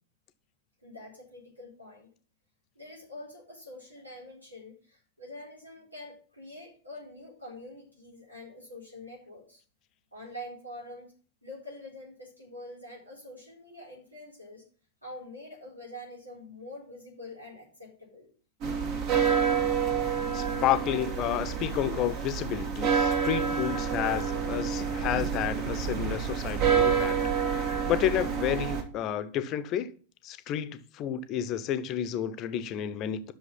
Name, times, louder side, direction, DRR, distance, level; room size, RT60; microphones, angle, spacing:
voice 1, 0.8-2.1 2.7-9.6 10.1-11.1 11.4-14.6 15.0-18.3, left 1 dB, 85° right, 4.4 m, -45 dB
sound 1, 18.6-28.8, right 7 dB, 45° right, 2.3 m, -28 dB
voice 2, 20.3-27.2 27.9-29.9 30.2-33.3, left 10 dB, 35° left, 0.9 m, -30 dB
11.0 x 6.5 x 5.4 m
figure-of-eight pair, 90°, 0 cm